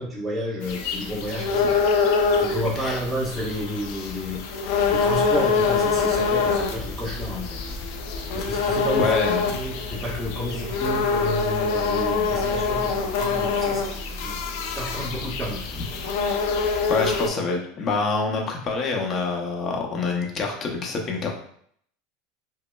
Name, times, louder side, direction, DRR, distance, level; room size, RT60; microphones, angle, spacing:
voice 1, 0.0-2.1 2.3-4.5 4.9-7.6 8.3-9.2 9.4-13.9 14.2-14.3 14.7-15.7, equal, 10° right, -6 dB, 1.2 m, -31 dB
sound 1, 0.6-17.3, left 5 dB, 70° left, 0.5 m, -25 dB
voice 2, 9.0-9.6 16.5-21.3, left 4 dB, 35° left, 1 dB, 0.8 m, -26 dB
5.0 x 2.1 x 2.2 m, 0.65 s
supercardioid pair, 115°, 0 cm